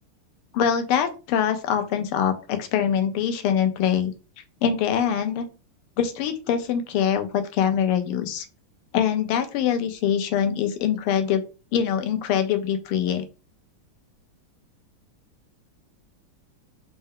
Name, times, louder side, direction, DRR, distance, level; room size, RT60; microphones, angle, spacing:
voice 1, 0.5-4.1 4.6-5.5 6.0-8.5 8.9-11.4 11.7-13.2, left 8 dB, 85° left, 7 dB, 1.5 m, -23 dB
4.3 x 2.1 x 3.6 m, 0.33 s
omnidirectional pair, 2.4 m